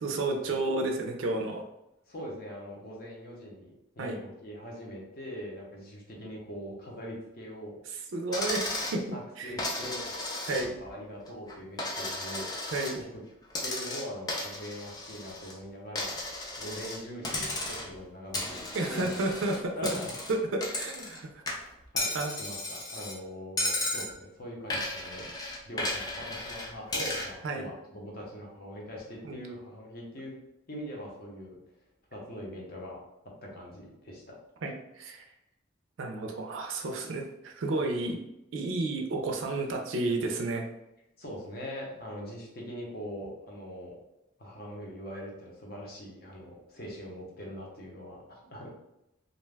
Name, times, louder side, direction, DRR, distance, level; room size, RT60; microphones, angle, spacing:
voice 1, 0.0-1.6 4.0-4.2 7.9-9.6 10.5-10.8 12.7-13.0 18.7-19.9 20.3-21.4 22.1-22.3 27.4-27.7 29.2-29.4 34.6-35.3 36.0-38.2 38.5-40.7, right 2 dB, 70° right, 2 dB, 0.4 m, -31 dB
voice 2, 2.1-7.7 9.1-10.2 10.5-12.7 13.1-13.2 13.6-16.2 16.6-19.2 19.7-20.1 21.9-25.3 25.7-30.4 30.7-31.6 32.1-33.0 33.4-34.3 41.2-43.9 44.4-48.7, equal, 50° left, -2 dB, 0.8 m, -42 dB
Coin (dropping), 8.3-9.0 9.6-10.9 11.3-13.0 13.5-15.5 16.0-17.0 17.2-18.0 18.3-21.2 21.5-23.2 23.6-24.1 24.7-27.3, left 1 dB, 20° left, 0.4 m, -34 dB
2.5 x 2.2 x 3.3 m, 0.88 s
head